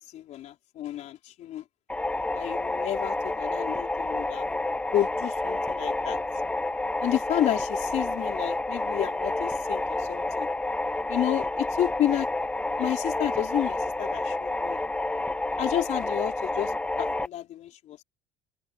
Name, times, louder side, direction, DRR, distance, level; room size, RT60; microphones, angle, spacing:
voice 1, 0.0-1.6 2.3-6.2 7.0-10.5 11.1-12.3 12.8-14.8 15.6-18.0, left 12 dB, 60° left, 4.0 m, -31 dB
sound 1, 1.9-17.3, left 2 dB, 10° left, 0.5 m, -29 dB
supercardioid pair, 80°, 13 cm